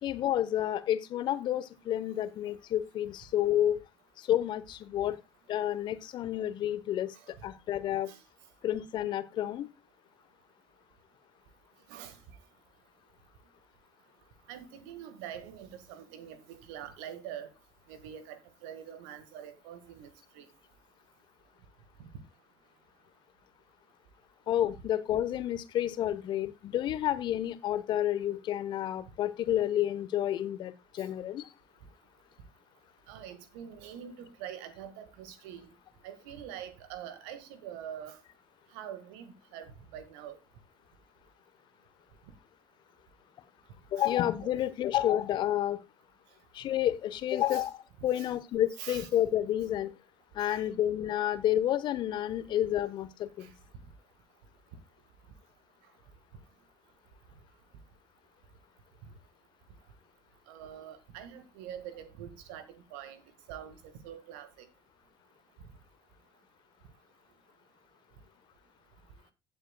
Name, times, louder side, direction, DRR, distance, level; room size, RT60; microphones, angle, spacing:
voice 1, 0.0-3.8 4.2-5.2 5.5-8.1 8.6-9.7 24.5-31.5 43.9-45.8 46.5-49.9 50.3-53.5, left 12 dB, 50° left, 1.0 m, -30 dB
voice 2, 14.5-17.5 17.9-20.1 20.3-20.5 22.0-22.1 33.1-35.7 36.0-38.2 38.7-40.4 44.0-44.1 44.4-44.5 47.3-47.7 48.1-48.3 48.8-49.1 50.4-50.6 53.4-53.5 60.5-63.2 63.5-63.8 64.0-64.7, right 9 dB, 70° right, 1.6 m, -45 dB
16.5 x 7.9 x 2.3 m
figure-of-eight pair, 55°, 10 cm